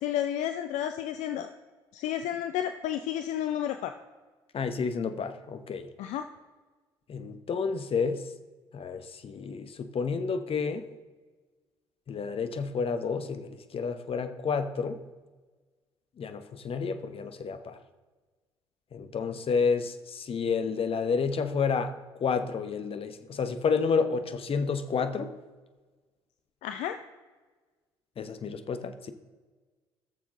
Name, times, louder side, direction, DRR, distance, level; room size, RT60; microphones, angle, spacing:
voice 1, 0.0-1.5 1.9-3.9 6.0-6.3 26.6-27.0, left 10 dB, 65° left, 9 dB, 0.6 m, -31 dB
voice 2, 4.5-5.9 7.1-8.2 8.7-10.9 12.1-15.0 16.2-17.8 18.9-21.9 22.2-25.3 28.2-29.1, left 5 dB, 45° left, 10 dB, 1.0 m, -30 dB
16.5 x 7.2 x 3.7 m, 1.3 s
hypercardioid pair, 50°, 13 cm